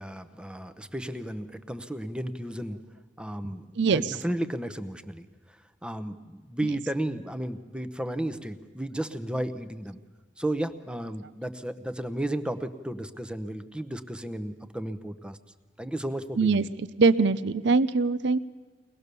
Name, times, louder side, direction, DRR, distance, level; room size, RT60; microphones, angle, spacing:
voice 1, 0.0-2.8 3.2-10.0 10.4-15.4 15.8-16.7, right 1 dB, 5° right, 10 dB, 0.8 m, -33 dB
voice 2, 3.8-4.1 6.6-6.7 16.4-16.6 17.0-18.4, right 4 dB, 65° right, 15 dB, 0.6 m, -22 dB
23.0 x 19.5 x 6.8 m, 1.4 s
head